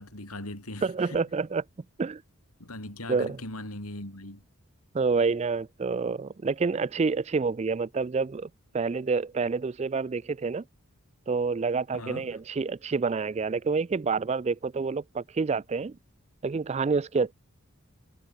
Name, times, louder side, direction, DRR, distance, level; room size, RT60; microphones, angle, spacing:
voice 1, 0.0-1.2 2.6-4.4 12.0-12.3, left 1 dB, 85° left, 5.6 m, -39 dB
voice 2, 0.8-1.6 2.0-2.2 3.1-3.4 4.9-8.5 8.7-10.6 11.3-16.0 16.4-17.3, right 4 dB, 30° right, 0.3 m, -28 dB
head